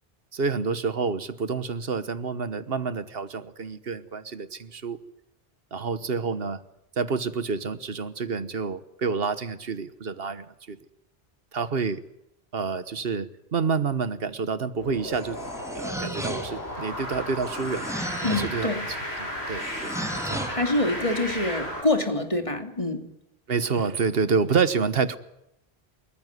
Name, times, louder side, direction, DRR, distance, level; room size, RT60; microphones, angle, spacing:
voice 1, 0.3-5.0 5.7-6.6 7.0-10.8 11.5-12.0 12.5-15.4 15.7-17.9 18.3-18.7 19.2-20.0 20.3-20.5 23.5-25.2, right 5 dB, 65° right, 13 dB, 1.4 m, -28 dB
sound 1, 14.8-21.8, equal, 80° left, 7.9 m, -34 dB
sound 2, 15.1-16.7 17.4-18.6 19.6-20.6, right 1 dB, 5° right, 2.9 m, -34 dB
voice 2, 18.2-18.8 20.4-23.0, left 2 dB, 30° left, 5 dB, 2.9 m, -26 dB
29.0 x 14.5 x 9.7 m, 0.84 s
omnidirectional pair, 1.1 m